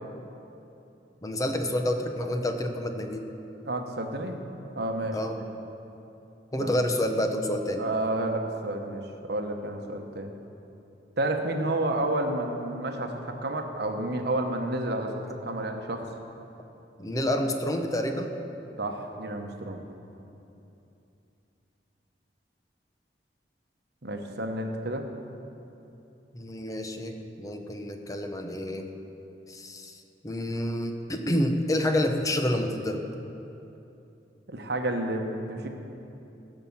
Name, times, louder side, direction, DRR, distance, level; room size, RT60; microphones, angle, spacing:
voice 1, 1.2-3.2 5.1-5.4 6.5-7.8 17.0-18.3 26.3-28.9 29.5-30.0 30.2-33.0, left 1 dB, 20° left, 5 dB, 0.8 m, -28 dB
voice 2, 3.6-4.4 4.7-5.2 6.6-6.8 7.8-9.0 9.3-10.3 11.2-16.1 18.8-19.8 24.0-25.1 34.5-35.7, right 1 dB, 65° right, 4 dB, 1.1 m, -30 dB
14.5 x 5.8 x 7.2 m, 2.9 s
head